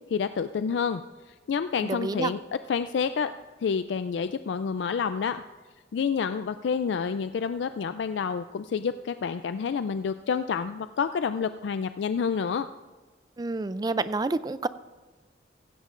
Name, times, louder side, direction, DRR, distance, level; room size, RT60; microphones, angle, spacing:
voice 1, 0.1-1.0 1.3-2.4 2.7-3.3 3.6-5.4 5.9-12.7, left 6 dB, 75° left, 11 dB, 0.3 m, -28 dB
voice 2, 1.8-2.3 13.4-14.7, right 3 dB, 20° right, 14 dB, 0.3 m, -28 dB
15.5 x 15.5 x 2.5 m, 1.3 s
head